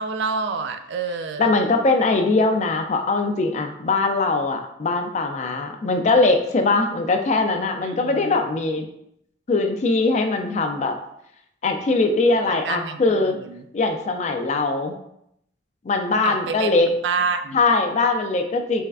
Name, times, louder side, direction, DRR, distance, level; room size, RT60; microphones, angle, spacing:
voice 1, 0.0-1.5 7.8-8.4 12.6-13.6 16.2-16.8 17.0-17.6, right 5 dB, 70° right, 9 dB, 0.3 m, -28 dB
voice 2, 1.4-8.9 9.5-11.0 11.6-13.4 13.7-15.0 15.8-16.9 17.5-18.8, left 3 dB, 40° left, 5 dB, 0.3 m, -21 dB
3.5 x 3.2 x 2.3 m, 0.76 s
head